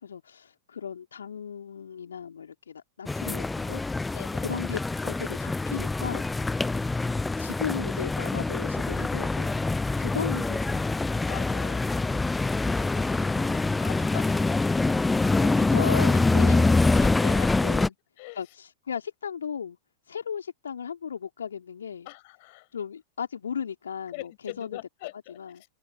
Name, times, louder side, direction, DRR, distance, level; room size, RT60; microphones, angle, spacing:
voice 1, 0.0-3.8 4.4-6.2 7.4-11.3 15.7-16.8 17.6-17.9 18.3-19.8 20.1-22.1 22.7-24.8 25.3-25.6, left 7 dB, 70° left, 3.0 m, -36 dB
sound 1, 3.1-17.9, left 3 dB, 10° left, 0.4 m, -25 dB
voice 2, 4.1-4.6 11.3-11.9 12.6-14.9 15.4-15.9 16.4-17.9 18.2-18.4 22.0-22.7 24.1-25.7, left 25 dB, 50° left, 6.6 m, -42 dB
open air
figure-of-eight pair, 90°, 0 cm